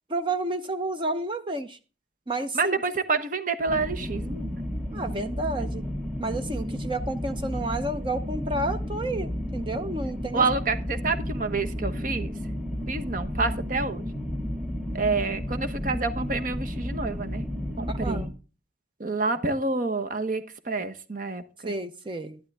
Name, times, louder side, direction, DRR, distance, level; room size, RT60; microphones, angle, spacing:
voice 1, 0.1-1.8 2.3-2.8 4.9-5.8 6.2-10.4 17.9-18.3 21.6-22.4, right 2 dB, 30° right, 8 dB, 0.8 m, -30 dB
voice 2, 2.5-4.6 10.3-12.3 12.9-14.0 14.9-17.5 17.8-18.3 19.0-21.7, right 3 dB, 50° right, 8 dB, 1.2 m, -28 dB
sound 1, 3.7-18.3, equal, ahead, 1.9 m, -32 dB
12.0 x 11.5 x 3.5 m, 0.33 s
head